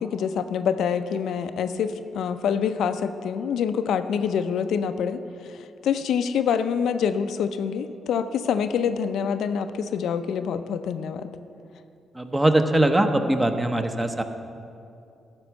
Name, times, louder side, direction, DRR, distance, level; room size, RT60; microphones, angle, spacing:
voice 1, 0.0-11.3, left 7 dB, 85° left, 10 dB, 0.4 m, -26 dB
voice 2, 12.3-14.2, right 1 dB, 15° right, 7 dB, 0.8 m, -21 dB
12.5 x 4.5 x 7.0 m, 2.5 s
cardioid pair, 90°, 0 cm